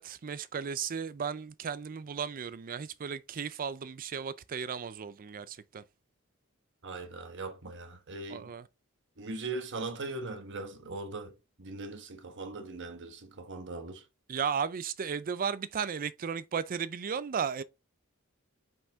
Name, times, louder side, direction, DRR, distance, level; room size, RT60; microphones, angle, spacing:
voice 1, 0.0-5.8 8.3-8.7 14.3-17.6, right 6 dB, 40° right, 0.4 m, -35 dB
voice 2, 6.8-8.5 9.2-14.0, right 3 dB, 55° right, 1.3 m, -40 dB
5.5 x 5.4 x 3.5 m
head